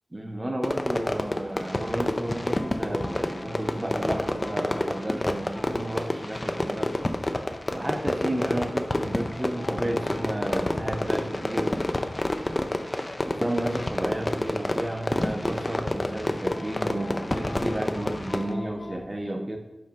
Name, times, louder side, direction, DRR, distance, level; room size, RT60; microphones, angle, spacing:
voice 1, 0.1-6.9 7.7-11.7 13.3-19.6, right 1 dB, 25° right, 4 dB, 0.8 m, -32 dB
Fireworks, 0.6-18.5, left 1 dB, 30° left, 0.5 m, -29 dB
sound 1, 2.5-8.7 9.1-15.7 16.5-19.0, left 2 dB, 85° left, 0.9 m, -46 dB
5.2 x 4.0 x 5.3 m, 0.98 s
wide cardioid pair, 65°, 0 cm